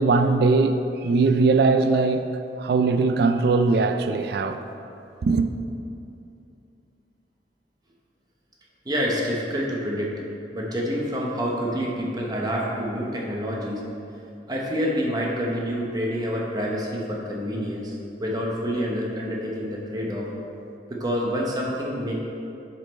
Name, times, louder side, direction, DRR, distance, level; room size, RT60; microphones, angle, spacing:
voice 1, 0.0-2.3 2.6-4.6 5.2-5.5, right 3 dB, 60° right, 0.3 m, -20 dB
voice 2, 8.8-10.1 10.5-13.8 14.5-20.3 20.9-22.1, equal, 20° right, 0.8 m, -27 dB
6.2 x 5.3 x 4.2 m
head